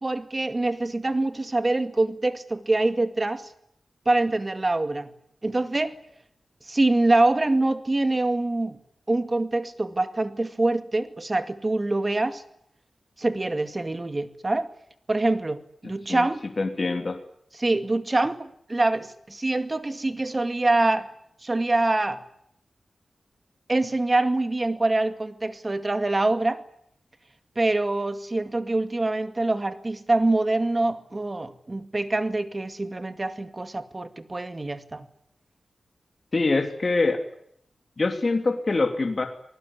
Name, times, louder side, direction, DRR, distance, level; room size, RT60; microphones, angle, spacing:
voice 1, 0.0-3.5 4.1-5.1 5.4-6.0 6.7-8.8 9.1-12.4 13.2-14.7 15.1-16.5 17.6-21.1 21.4-22.2 23.7-26.6 27.6-35.1, right 2 dB, 30° right, 2.1 m, -25 dB
voice 2, 15.8-16.3 16.6-17.2 36.3-37.2 38.0-39.3, left 3 dB, 45° left, 3.0 m, -24 dB
27.0 x 19.0 x 9.9 m
wide cardioid pair, 70°, 0 cm